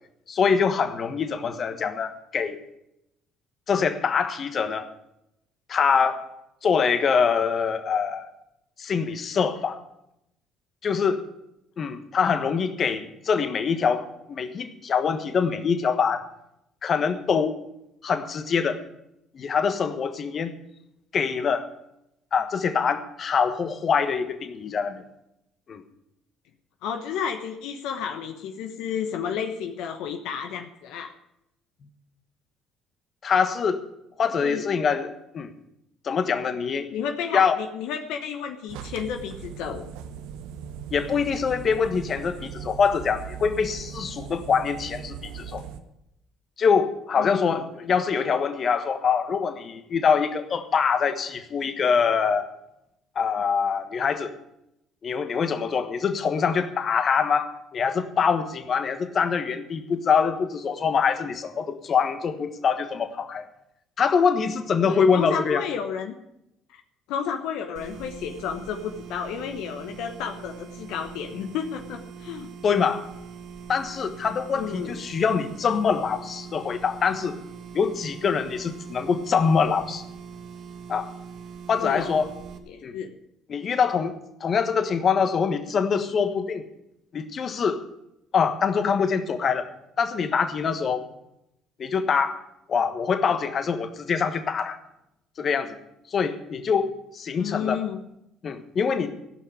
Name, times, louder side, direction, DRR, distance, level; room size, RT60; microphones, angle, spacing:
voice 1, 0.3-2.6 3.7-4.9 5.7-6.2 6.6-8.3 8.8-9.8 10.8-11.2 11.8-16.2 16.8-17.6 18.0-18.8 19.3-20.5 21.1-21.7 22.3-25.0 25.7-25.8 33.2-33.8 34.2-35.5 36.0-36.9 37.3-37.6 40.9-45.6 46.6-52.5 53.1-54.3 55.0-63.5 64.0-65.6 72.6-73.0 73.7-77.4 77.7-80.0 80.9-81.1 81.7-82.3 82.8-83.0 83.5-84.1 84.4-86.7 87.1-87.8 88.3-89.7 90.0-91.0 91.8-92.4 92.7-94.8 95.4-95.8 96.1-97.8 98.4-99.1, left 6 dB, 50° left, 8 dB, 1.4 m, -24 dB
voice 2, 26.8-31.1 34.2-34.6 36.9-39.8 47.2-47.6 64.8-66.2 66.7-66.8 67.1-72.5 74.5-75.0 81.8-82.2 82.7-83.1 97.4-98.0, left 7 dB, 75° left, 5 dB, 1.1 m, -31 dB
sound 1, 38.7-45.8, right 8 dB, 80° right, 1.0 m, -39 dB
sound 2, 67.8-82.6, right 6 dB, 65° right, 1.9 m, -42 dB
15.5 x 5.9 x 9.4 m, 0.83 s
supercardioid pair, 65°, 0 cm